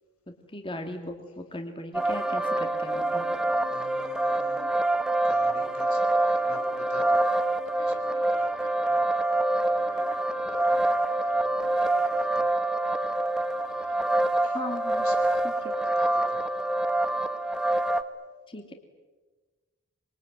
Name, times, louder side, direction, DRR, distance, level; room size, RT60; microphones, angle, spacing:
voice 1, 0.5-3.3 14.5-15.1 15.4-15.7 18.5-18.7, left 1 dB, 25° left, 4 dB, 2.4 m, -37 dB
sound 1, 1.9-18.0, right 2 dB, 5° right, 1.2 m, -26 dB
voice 2, 3.7-4.9 5.2-7.4 7.6-10.8 11.2-12.5 13.6-14.1 14.4-14.6 14.9-16.5, left 2 dB, 90° left, 5 dB, 5.4 m, -47 dB
26.5 x 23.0 x 9.5 m, 1.3 s
head